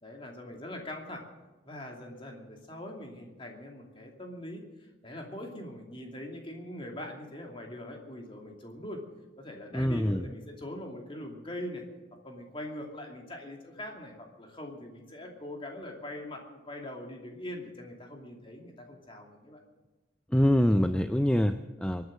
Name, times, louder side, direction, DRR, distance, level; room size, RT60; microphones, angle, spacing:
voice 1, 0.0-1.2 1.6-9.0 9.4-11.8 12.2-19.6, left 1 dB, 25° left, 1 dB, 2.7 m, -42 dB
voice 2, 9.7-10.2 20.3-22.1, equal, 5° left, 8 dB, 0.4 m, -25 dB
23.5 x 9.4 x 6.5 m, 1.2 s
head